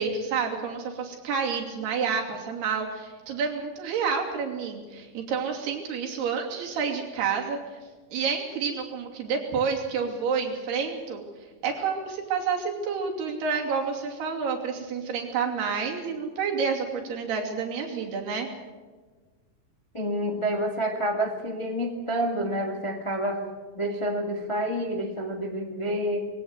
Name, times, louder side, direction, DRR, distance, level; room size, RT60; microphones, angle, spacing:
voice 1, 0.0-7.6 8.1-11.3 11.6-18.5, right 5 dB, 90° right, 1 dB, 4.8 m, -29 dB
voice 2, 19.9-23.4 23.7-26.3, equal, 30° left, 3 dB, 0.5 m, -28 dB
22.0 x 17.0 x 8.0 m, 1.4 s
omnidirectional pair, 4.5 m